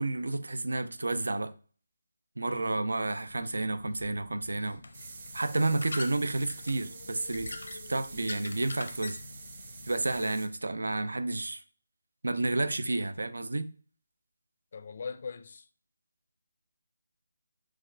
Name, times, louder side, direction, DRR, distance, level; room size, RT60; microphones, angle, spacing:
voice 1, 0.0-1.5 2.4-4.8 5.3-7.6 7.9-9.2 9.8-11.6 12.2-13.7, right 2 dB, 85° right, 0.5 m, -30 dB
sound 1, 3.3-10.2, left 2 dB, 75° left, 0.7 m, -45 dB
sound 2, 4.9-10.5, right 4 dB, 35° right, 0.5 m, -48 dB
voice 2, 14.7-15.7, left 5 dB, 40° left, 0.4 m, -41 dB
6.1 x 2.4 x 3.2 m
figure-of-eight pair, 170°, 0 cm